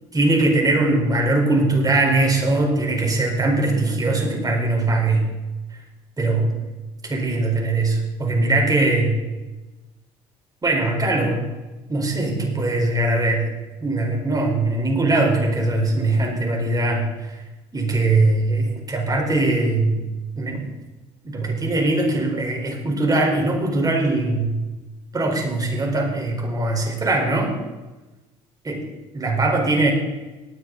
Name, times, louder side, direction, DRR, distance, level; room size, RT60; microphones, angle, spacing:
voice 1, 0.1-5.3 5.7-5.8 6.2-6.5 7.0-9.1 10.6-11.4 11.9-13.5 13.8-17.3 17.7-20.0 20.4-20.7 21.2-24.5 25.1-27.6 28.6-28.8 29.1-29.9, right 2 dB, 25° right, 1 dB, 4.5 m, -21 dB
18.5 x 10.0 x 4.1 m, 1.1 s
supercardioid pair, 75°, 15 cm